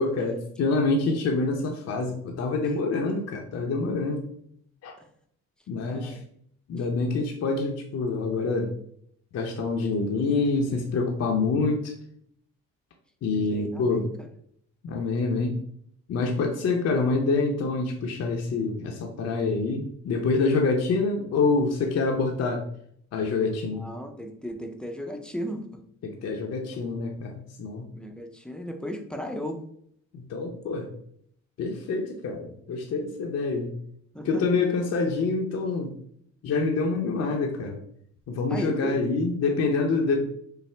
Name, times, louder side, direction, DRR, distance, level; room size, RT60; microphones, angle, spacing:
voice 1, 0.0-4.2 4.8-4.9 5.7-6.2 6.7-8.7 9.3-11.9 13.2-14.1 14.8-15.6 16.1-22.6 23.1-23.8 26.0-27.9 30.1-30.9 31.6-33.7 34.2-35.9 36.4-37.8 38.3-40.2, left 3 dB, 55° left, 1 dB, 0.7 m, -26 dB
voice 2, 5.9-6.2 13.5-14.3 23.7-25.6 27.9-29.6 34.1-34.6 38.5-39.0, equal, 5° left, 4 dB, 0.5 m, -35 dB
5.6 x 2.1 x 3.3 m, 0.67 s
cardioid pair, 90°, 30 cm